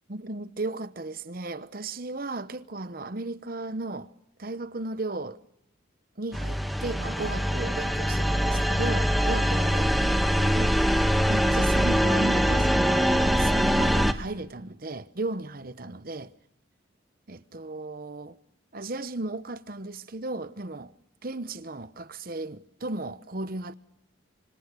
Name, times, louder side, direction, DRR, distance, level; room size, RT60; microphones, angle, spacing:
voice 1, 0.1-4.1 4.4-5.4 6.2-10.2 10.5-10.8 11.3-16.3 17.3-18.4 18.7-20.9 21.2-23.7, right 2 dB, 45° right, 0.9 m, -35 dB
sound 1, 6.3-14.1, equal, ahead, 0.9 m, -23 dB
26.0 x 25.0 x 6.8 m
head